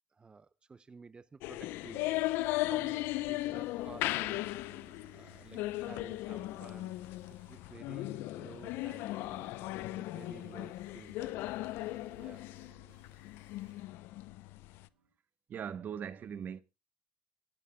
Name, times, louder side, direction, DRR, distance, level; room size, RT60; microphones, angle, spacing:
voice 1, 0.1-4.8 5.1-7.0 7.5-9.5 10.0-11.5 12.1-12.5, right 4 dB, 25° right, 0.6 m, -53 dB
sound 1, 1.4-14.9, left 17 dB, 85° left, 0.5 m, -37 dB
sound 2, 2.3-15.1, right 4 dB, 90° right, 4.5 m, -64 dB
voice 2, 15.5-16.6, right 8 dB, 55° right, 0.9 m, -40 dB
27.5 x 9.2 x 2.2 m
cardioid pair, 90°, 4 cm